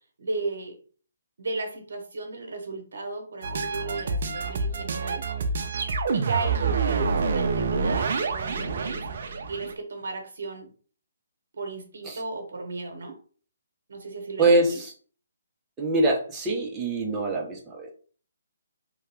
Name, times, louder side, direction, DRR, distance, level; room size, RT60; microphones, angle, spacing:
voice 1, 0.2-0.8 1.4-5.2 6.1-9.2 9.5-10.7 11.5-13.2 13.9-14.8, right 3 dB, 70° right, 3 dB, 1.0 m, -35 dB
sound 1, 3.4-9.7, right 4 dB, 55° right, 0.5 m, -27 dB
voice 2, 14.4-14.9 15.8-17.9, right 2 dB, 15° right, 0 dB, 0.7 m, -24 dB
2.8 x 2.3 x 3.3 m, 0.41 s
hypercardioid pair, 155°, 0 cm